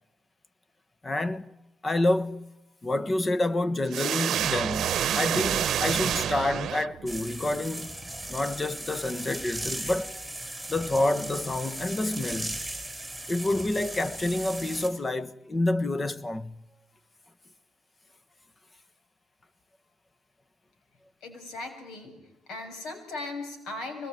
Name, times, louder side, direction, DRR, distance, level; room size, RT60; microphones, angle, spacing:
voice 1, 1.0-1.5 1.8-2.5 2.8-8.0 8.3-10.3 10.7-12.6 13.3-16.6, left 2 dB, 25° left, 1.4 m, -28 dB
sound 1, 3.9-7.3, right 10 dB, 65° right, 0.9 m, -28 dB
sound 2, 7.1-14.9, right 1 dB, ahead, 6.3 m, -37 dB
voice 2, 21.2-22.2 22.5-24.1, left 2 dB, 80° left, 7.0 m, -38 dB
24.5 x 20.5 x 9.6 m
cardioid pair, 90°, 0 cm